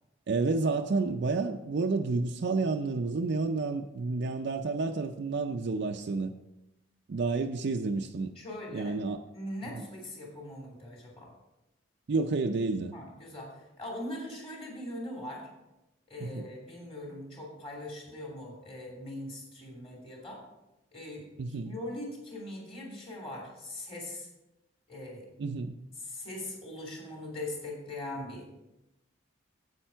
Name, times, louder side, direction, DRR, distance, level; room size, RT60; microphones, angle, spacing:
voice 1, 0.3-6.3 7.1-8.3 8.7-9.2 9.7-9.8 12.1-12.9 16.2-16.5 21.4-21.7 25.4-25.7, right 3 dB, 55° right, 4 dB, 0.4 m, -30 dB
voice 2, 8.4-9.0 9.3-11.3 12.9-15.5 16.1-20.4 20.9-21.2 21.6-24.3 24.9-25.2 26.0-28.5, left 1 dB, 30° left, -2 dB, 2.8 m, -41 dB
8.8 x 8.3 x 4.5 m, 0.95 s
head